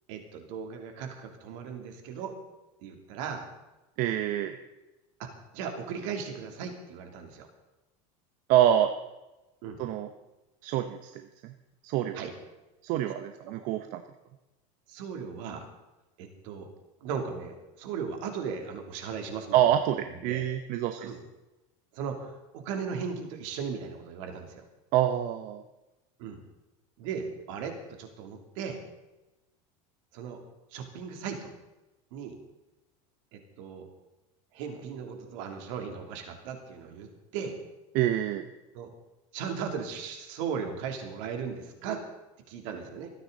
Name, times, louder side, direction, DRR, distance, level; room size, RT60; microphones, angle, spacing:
voice 1, 0.1-2.3 2.8-3.5 5.2-7.5 9.6-9.8 12.1-12.3 13.5-13.6 14.9-15.7 16.2-16.7 17.0-19.7 20.1-20.4 21.0-21.2 21.9-24.6 26.2-26.4 27.0-28.8 30.1-30.4 30.7-31.5 32.1-32.4 33.3-33.9 34.5-37.6 38.7-38.9 39.3-42.0 42.5-43.1, right 6 dB, 70° right, 4 dB, 3.0 m, -37 dB
voice 2, 4.0-4.5 8.5-8.9 9.8-10.1 10.6-11.5 11.8-12.2 12.8-14.0 19.5-21.1 24.9-25.6 37.9-38.5, right 11 dB, 55° right, 8 dB, 1.0 m, -26 dB
27.0 x 9.7 x 4.0 m, 1.0 s
supercardioid pair, 130°, 17 cm